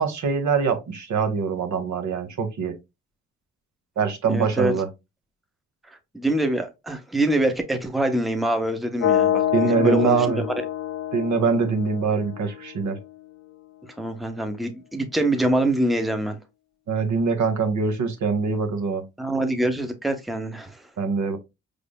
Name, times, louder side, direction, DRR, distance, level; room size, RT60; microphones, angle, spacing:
voice 1, 0.0-2.7 4.0-4.9 9.5-10.4 11.1-13.0 16.9-19.0 21.0-21.4, right 5 dB, 60° right, 0.9 m, -23 dB
voice 2, 4.3-4.7 6.1-10.3 14.0-16.4 19.2-20.8, right 1 dB, ahead, 0.7 m, -24 dB
sound 1, 9.0-13.0, left 10 dB, 60° left, 0.6 m, -26 dB
4.9 x 3.3 x 2.2 m
supercardioid pair, 55°, 32 cm